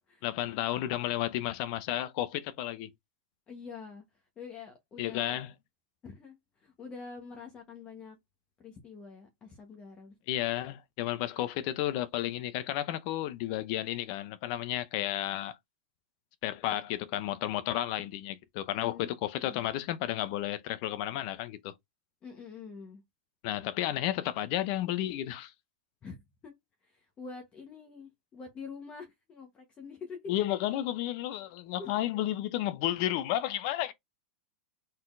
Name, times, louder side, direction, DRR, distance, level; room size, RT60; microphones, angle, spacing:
voice 1, 0.2-2.9 5.0-5.5 10.3-15.6 16.4-21.7 23.4-25.5 30.3-33.9, left 13 dB, 45° left, 0.6 m, -32 dB
voice 2, 3.5-5.4 6.0-8.2 8.6-10.2 18.7-19.1 22.2-23.0 26.0-26.5 26.8-30.3 31.8-31.9, left 5 dB, 20° left, 1.2 m, -46 dB
4.3 x 3.9 x 2.6 m
supercardioid pair, 155°, 5 cm